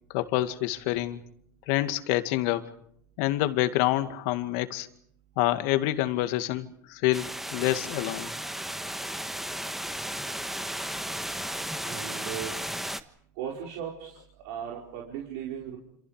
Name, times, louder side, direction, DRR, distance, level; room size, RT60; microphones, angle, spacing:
voice 1, 0.1-1.2 1.7-2.7 3.2-4.9 5.4-8.3, left 15 dB, 65° left, 9 dB, 2.1 m, -27 dB
sound 1, 7.1-13.0, right 1 dB, 5° right, 1.4 m, -34 dB
voice 2, 11.8-12.5 13.4-14.1 14.4-15.8, right 9 dB, 70° right, -2 dB, 5.1 m, -36 dB
28.0 x 27.0 x 5.1 m, 0.69 s
supercardioid pair, 105°, 9 cm